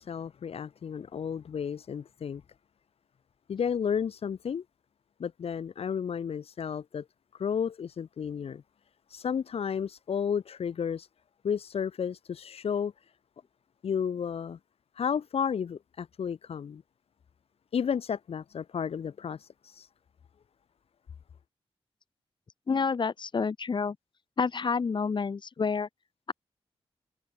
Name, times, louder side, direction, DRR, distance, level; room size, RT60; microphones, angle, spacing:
voice 1, 0.0-2.4 3.5-4.6 5.2-7.0 7.3-8.6 9.1-11.1 11.4-12.9 13.8-14.6 14.9-16.8 17.7-19.9, left 7 dB, 70° left, 1.3 m, -32 dB
voice 2, 22.7-24.0 24.4-25.9, left 5 dB, 50° left, 1.7 m, -28 dB
wide cardioid pair, 105°, 10 cm